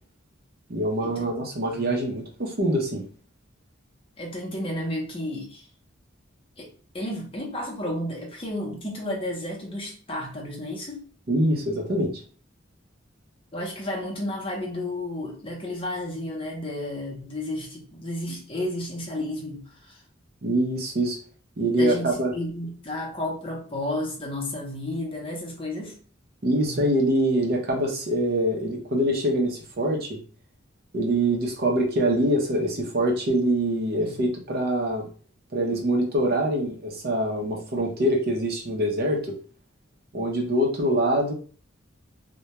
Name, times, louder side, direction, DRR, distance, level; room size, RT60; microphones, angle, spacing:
voice 1, 0.7-3.0 11.3-12.1 20.4-21.2 21.6-22.3 26.4-30.2 30.9-35.1 35.5-39.4 40.1-41.3, right 1 dB, 55° right, 0 dB, 0.6 m, -24 dB
voice 2, 4.2-5.7 6.6-6.7 6.9-11.0 13.5-20.0 21.7-26.0 26.7-26.8 33.9-34.1, left 1 dB, 30° left, -1 dB, 0.7 m, -32 dB
2.2 x 2.2 x 2.9 m, 0.42 s
head